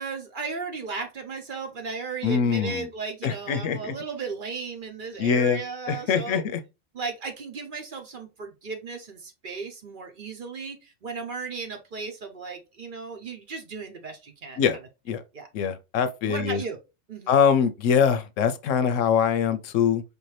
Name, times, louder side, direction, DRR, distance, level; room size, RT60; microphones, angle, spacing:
voice 1, 0.0-6.4 6.9-14.6 15.3-15.5 16.2-16.8 17.1-17.4, right 4 dB, 50° right, 0.8 m, -35 dB
voice 2, 2.2-2.9 3.2-3.9 5.2-5.6 5.9-6.6 14.6-14.8 15.1-15.2 15.5-16.6 17.3-20.0, left 7 dB, 85° left, 1.0 m, -23 dB
4.9 x 2.7 x 3.1 m
omnidirectional pair, 1.3 m